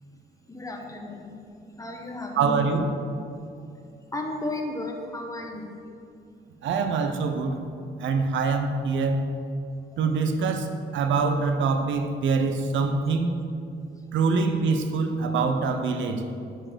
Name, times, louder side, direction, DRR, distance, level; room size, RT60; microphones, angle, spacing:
voice 1, 0.5-1.3 1.8-2.9 4.1-5.7 9.9-10.0, left 2 dB, 15° left, 2 dB, 1.2 m, -34 dB
voice 2, 2.4-2.9 6.6-7.6 8.0-9.3 10.0-10.7 10.9-13.4 14.1-16.2, right 4 dB, 75° right, 7 dB, 0.8 m, -24 dB
7.8 x 4.6 x 6.2 m, 2.5 s
cardioid pair, 90°, 20 cm